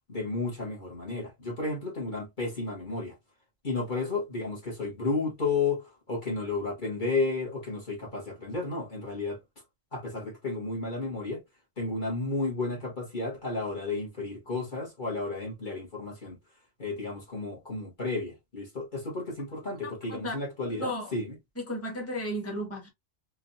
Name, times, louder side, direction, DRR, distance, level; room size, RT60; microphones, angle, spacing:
voice 1, 0.1-3.2 3.6-9.4 9.9-11.4 11.8-16.4 16.8-21.3, left 3 dB, 40° left, 1.6 m, -32 dB
voice 2, 20.8-21.1 21.6-22.9, equal, 10° left, 1.5 m, -34 dB
3.8 x 3.5 x 2.7 m
omnidirectional pair, 1.4 m